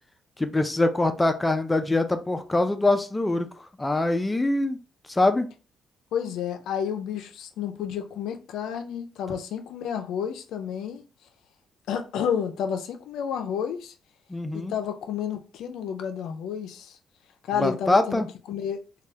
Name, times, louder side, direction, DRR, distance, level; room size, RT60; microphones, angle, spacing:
voice 1, 0.4-4.8 5.1-5.5 14.3-14.7 17.6-18.3, left 2 dB, 15° left, 0.4 m, -24 dB
voice 2, 6.1-11.0 11.9-13.9 14.5-17.0 17.5-18.8, left 8 dB, 85° left, 0.4 m, -31 dB
2.7 x 2.2 x 3.3 m
cardioid pair, 90°, 0 cm